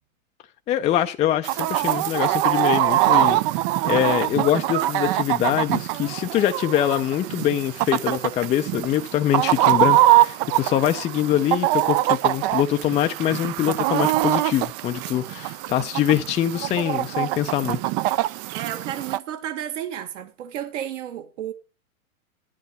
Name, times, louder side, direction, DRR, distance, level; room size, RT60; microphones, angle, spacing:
voice 1, 0.7-3.4 3.8-17.8, left 11 dB, 15° left, 0.5 m, -24 dB
Chicken rooster, 1.4-19.2, right 15 dB, 30° right, 0.5 m, -23 dB
voice 2, 18.5-21.5, right 10 dB, 55° right, 1.8 m, -32 dB
11.0 x 10.5 x 4.2 m
hypercardioid pair, 115°, 43 cm